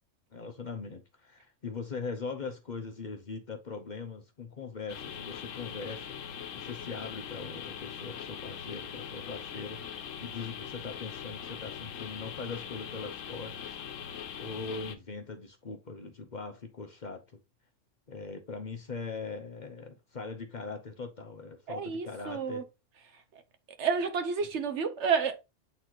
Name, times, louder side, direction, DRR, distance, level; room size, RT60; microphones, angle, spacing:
voice 1, 0.3-14.1 14.4-17.4 18.1-22.6, left 4 dB, 40° left, 0.8 m, -41 dB
sound 1, 4.9-15.0, left 8 dB, 85° left, 1.1 m, -41 dB
voice 2, 21.7-22.6 23.8-25.4, right 6 dB, 65° right, 1.2 m, -30 dB
8.2 x 4.1 x 2.9 m
omnidirectional pair, 1.3 m